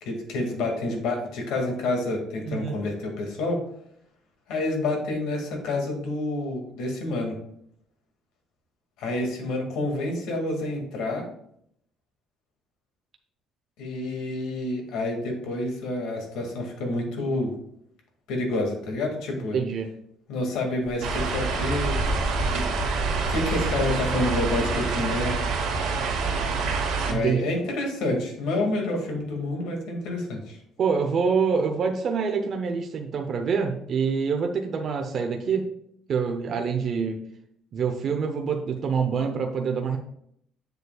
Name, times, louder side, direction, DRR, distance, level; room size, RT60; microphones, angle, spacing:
voice 1, 0.0-3.6 4.5-7.3 9.0-11.2 13.8-17.5 18.3-19.6 20.3-22.0 22.5-22.7 23.3-25.4 27.1-30.6, left 2 dB, 90° left, 2 dB, 2.0 m, -28 dB
voice 2, 2.4-2.8 19.5-19.9 27.1-27.4 30.8-35.7 36.1-37.2 37.7-40.0, right 5 dB, 40° right, 3 dB, 0.6 m, -26 dB
Wind, 20.8-26.8, left 1 dB, 10° left, 0.6 m, -34 dB
sound 1, 21.0-27.1, right 4 dB, 85° right, 1.7 m, -27 dB
8.0 x 6.8 x 2.3 m, 0.70 s
cardioid pair, 170°, 0 cm